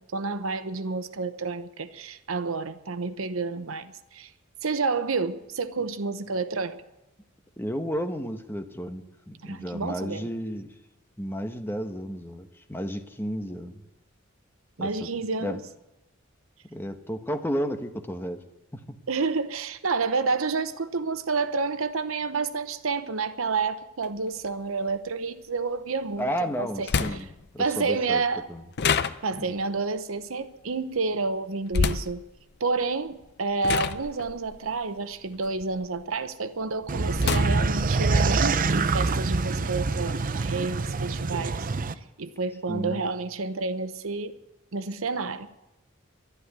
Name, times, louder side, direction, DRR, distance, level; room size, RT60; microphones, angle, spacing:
voice 1, 0.0-4.3 4.6-6.8 9.4-10.3 14.8-15.6 19.1-26.3 26.6-27.3 27.6-28.5 29.2-32.2 32.6-41.7 42.2-44.3 44.7-45.5, right 4 dB, 80° right, 0.9 m, -29 dB
voice 2, 7.6-10.7 11.2-13.8 14.8-15.1 15.4-15.6 16.7-18.4 18.7-19.0 26.2-27.3 27.5-28.2 28.5-28.6 29.4-29.5 42.7-43.0, equal, 10° left, 1.1 m, -32 dB
sound 1, 24.0-24.1 26.1-26.2 26.9-27.5 28.8-29.6 31.7-32.2 33.1-33.3 33.6-36.0 36.4-38.0, left 5 dB, 55° left, 0.6 m, -28 dB
sound 2, 36.9-41.9, right 3 dB, 40° right, 0.6 m, -25 dB
12.0 x 12.0 x 8.1 m
head